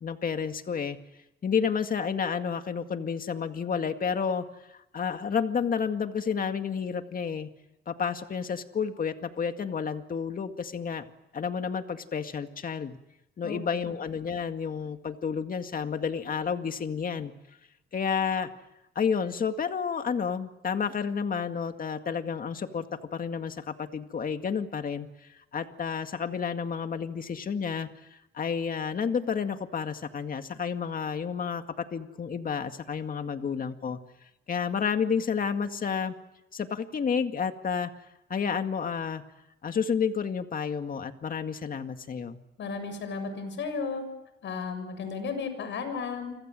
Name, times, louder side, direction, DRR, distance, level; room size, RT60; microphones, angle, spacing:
voice 1, 0.0-1.0 1.4-7.5 7.9-11.0 11.3-13.0 13.4-17.3 17.9-18.5 19.0-34.0 34.5-36.1 36.5-37.9 38.3-39.2 39.6-42.4, left 6 dB, 45° left, 7 dB, 2.1 m, -30 dB
voice 2, 42.6-44.0 44.4-46.4, left 5 dB, 70° left, 9 dB, 7.2 m, -34 dB
30.0 x 25.5 x 7.7 m, 0.92 s
cardioid pair, 90°, 20 cm